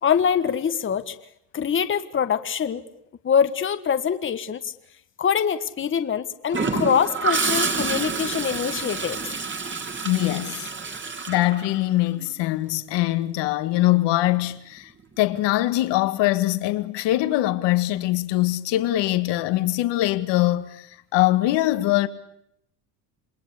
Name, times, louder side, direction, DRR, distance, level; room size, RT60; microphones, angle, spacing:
voice 1, 0.0-1.1 1.5-2.8 3.2-4.7 5.2-9.2, left 7 dB, 25° left, 1.5 m, -24 dB
Gurgling / Toilet flush, 6.5-12.3 14.3-14.5, right 4 dB, 25° right, 3.1 m, -28 dB
voice 2, 10.0-10.7 11.3-14.9 15.2-22.1, left 16 dB, 65° left, 2.0 m, -22 dB
28.0 x 21.0 x 8.5 m
cardioid pair, 125°, 45 cm